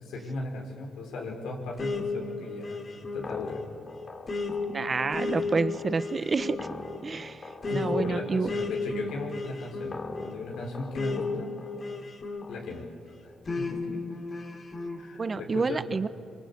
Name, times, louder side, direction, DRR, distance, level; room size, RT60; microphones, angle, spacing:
voice 1, 0.0-2.8 3.1-3.6 5.3-5.5 7.6-11.5 12.5-14.0 15.0-15.8, left 3 dB, 80° left, 0 dB, 4.6 m, -37 dB
sound 1, 1.8-12.8 13.5-15.0, left 3 dB, 35° left, 3.0 m, -34 dB
voice 2, 4.7-6.6 7.0-8.5 15.2-16.1, right 4 dB, 35° right, 14 dB, 1.0 m, -29 dB
24.5 x 23.5 x 8.5 m, 2.3 s
cardioid pair, 90°, 0 cm